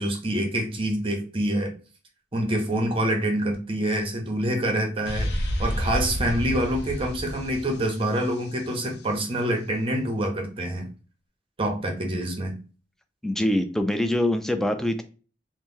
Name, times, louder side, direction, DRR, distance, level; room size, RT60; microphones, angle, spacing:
voice 1, 0.0-1.7 2.3-10.9 11.6-12.6, right 1 dB, 30° right, 0.7 m, -26 dB
sound 1, 5.1-8.8, equal, 65° left, 0.6 m, -30 dB
voice 2, 13.2-15.0, left 1 dB, 5° left, 0.3 m, -24 dB
2.9 x 2.1 x 3.5 m
head